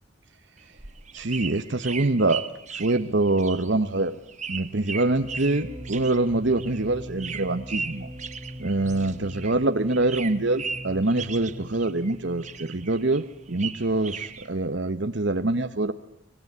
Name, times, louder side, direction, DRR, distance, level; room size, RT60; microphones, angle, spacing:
sound 1, 0.6-9.6 9.9-12.1 12.4-14.5, right 6 dB, 35° right, 1.4 m, -37 dB
voice 1, 1.1-2.5 2.7-4.2 4.5-8.1 8.6-15.9, right 2 dB, 55° right, 10 dB, 1.1 m, -25 dB
sound 2, 5.1-14.8, equal, 15° right, 1.9 m, -42 dB
25.0 x 19.5 x 9.6 m, 0.81 s
head